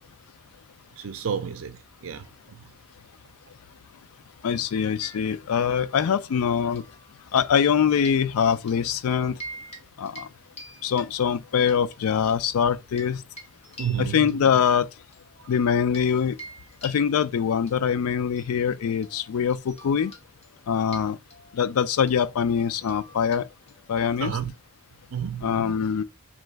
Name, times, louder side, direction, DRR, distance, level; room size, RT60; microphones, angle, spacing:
voice 1, 1.0-2.7 13.8-14.3 15.4-15.5 24.2-24.5 25.1-25.6, right 8 dB, 65° right, 0.5 m, -31 dB
voice 2, 4.4-6.8 7.3-9.4 10.0-10.3 10.8-13.2 14.0-14.9 15.5-16.4 16.8-20.1 20.7-21.2 21.5-23.5 23.9-24.4 25.4-26.0, left 7 dB, 85° left, 0.4 m, -23 dB
sound 1, 5.0-6.0 6.7-7.7 7.9-8.8 9.2-9.8 10.1-10.3 10.6-11.8 12.3-16.1 16.4-24.0, equal, 30° left, 1.1 m, -46 dB
3.9 x 3.1 x 3.3 m
head